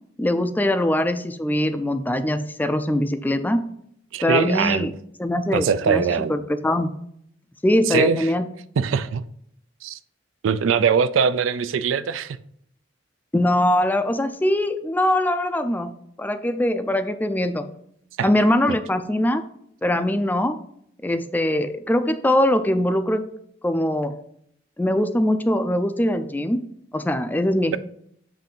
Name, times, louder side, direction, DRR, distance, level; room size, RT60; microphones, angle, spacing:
voice 1, 0.2-3.7 4.2-4.9 5.2-6.9 7.6-8.5 13.3-17.7 18.2-19.4 19.8-20.6 21.0-23.2 23.6-24.2 24.8-26.7 26.9-27.8, left 1 dB, 10° left, 0.3 m, -22 dB
voice 2, 4.1-4.9 5.5-6.3 7.9-8.3 8.8-9.2 9.8-10.0 10.4-12.4 18.2-18.3 18.7-18.8, right 6 dB, 85° right, 0.4 m, -22 dB
7.7 x 2.6 x 5.3 m
head